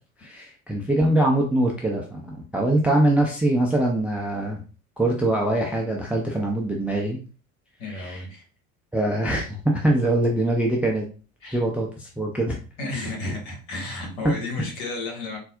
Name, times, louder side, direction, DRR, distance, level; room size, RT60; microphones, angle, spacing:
voice 1, 0.2-4.6 5.0-7.2 7.9-8.2 8.9-11.0 11.5-12.6 14.2-14.4, right 1 dB, 5° right, 0 dB, 0.4 m, -23 dB
voice 2, 7.8-8.4 11.4-11.6 12.8-15.4, left 2 dB, 55° left, -1 dB, 1.7 m, -32 dB
4.0 x 2.5 x 2.4 m, 0.36 s
figure-of-eight pair, 65°, 45 cm